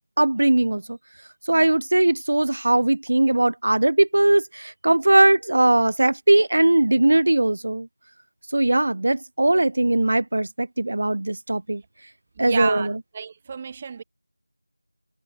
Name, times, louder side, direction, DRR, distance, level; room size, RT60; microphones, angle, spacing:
voice 1, 0.2-1.0 1.5-7.9 8.5-11.8 12.4-12.9, right 2 dB, 45° right, 0.7 m, -19 dB
voice 2, 12.4-14.0, right 6 dB, 15° right, 2.8 m, -31 dB
figure-of-eight pair, 175°, 0 cm